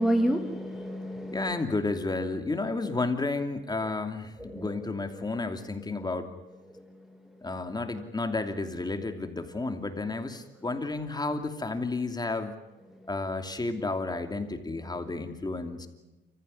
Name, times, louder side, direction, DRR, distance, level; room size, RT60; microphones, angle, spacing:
voice 1, 0.0-1.6 4.4-4.9 5.1-5.2 6.7-6.8 12.9-13.0, right 1 dB, ahead, 3 dB, 2.0 m, -29 dB
voice 2, 1.3-6.3 7.4-12.5 13.1-15.9, left 3 dB, 20° left, 6 dB, 2.8 m, -32 dB
30.0 x 15.0 x 9.9 m, 1.0 s
cardioid pair, 90°, 20 cm